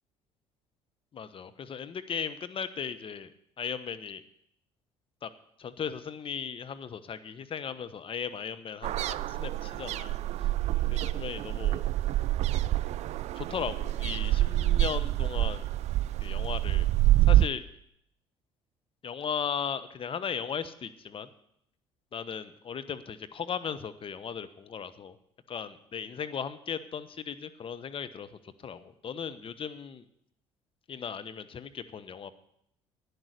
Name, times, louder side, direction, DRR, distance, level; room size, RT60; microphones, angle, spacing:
voice 1, 1.1-3.3 3.6-4.2 5.2-5.3 5.6-9.0 9.3-10.5 10.9-11.9 13.4-15.7 16.2-16.9 17.3-17.6 19.0-21.3 22.1-25.2 25.5-28.3 28.6-30.0 30.9-32.3, left 7 dB, 40° left, 12 dB, 1.0 m, -37 dB
sound 1, 8.8-17.5, right 15 dB, 55° right, 0.5 m, -27 dB
11.5 x 9.7 x 6.6 m, 0.72 s
hypercardioid pair, 60°, 13 cm